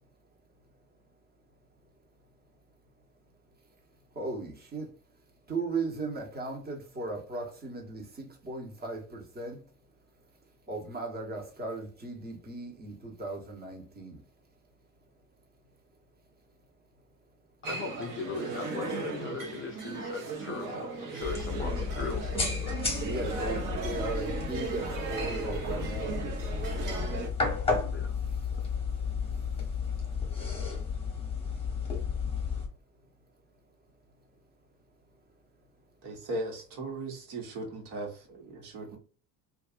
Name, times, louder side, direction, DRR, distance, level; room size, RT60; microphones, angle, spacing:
voice 1, 4.1-4.9 5.5-9.6 10.7-14.2 23.0-26.2 28.3-28.4, right 3 dB, 20° right, 1.1 m, -37 dB
voice 2, 17.6-22.8 27.8-28.1 28.5-28.6, left 4 dB, 30° left, 0.5 m, -39 dB
sound 1, 17.6-27.3, right 4 dB, 45° right, 1.0 m, -36 dB
sound 2, 21.2-32.7, left 5 dB, 10° left, 1.2 m, -33 dB
voice 3, 36.0-39.0, right 2 dB, 60° right, 1.3 m, -38 dB
2.6 x 2.5 x 2.4 m
hypercardioid pair, 70°, 46 cm